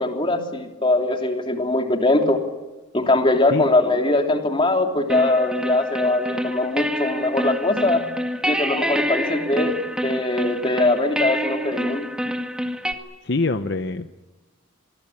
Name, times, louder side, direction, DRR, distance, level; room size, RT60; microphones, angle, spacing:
voice 1, 0.0-2.4 2.9-8.0 8.4-9.8 10.0-12.1, left 2 dB, 25° left, 4 dB, 3.3 m, -21 dB
sound 1, 5.1-12.9, equal, 5° right, 1.9 m, -27 dB
voice 2, 13.2-14.1, left 3 dB, 60° left, 10 dB, 0.9 m, -24 dB
27.0 x 21.5 x 8.7 m, 1.2 s
head